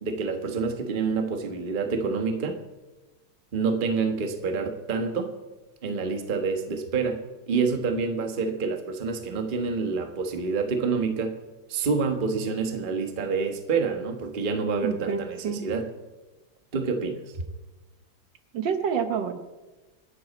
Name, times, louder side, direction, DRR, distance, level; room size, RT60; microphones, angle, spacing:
voice 1, 0.0-2.6 3.5-5.3 5.8-11.4 11.7-15.9 16.7-17.2, right 4 dB, 30° right, 5 dB, 1.1 m, -27 dB
voice 2, 14.8-15.6 18.5-19.4, right 7 dB, 65° right, 8 dB, 1.7 m, -28 dB
26.5 x 10.5 x 4.2 m, 1.2 s
omnidirectional pair, 2.2 m